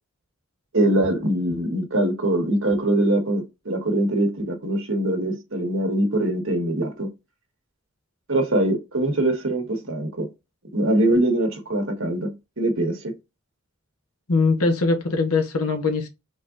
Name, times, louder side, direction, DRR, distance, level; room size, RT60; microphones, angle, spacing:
voice 1, 0.7-7.1 8.3-10.3 10.7-12.3 12.6-13.1, right 1 dB, 65° right, 1.5 m, -23 dB
voice 2, 14.3-16.1, left 3 dB, 85° left, 1.1 m, -21 dB
4.0 x 3.7 x 2.6 m
head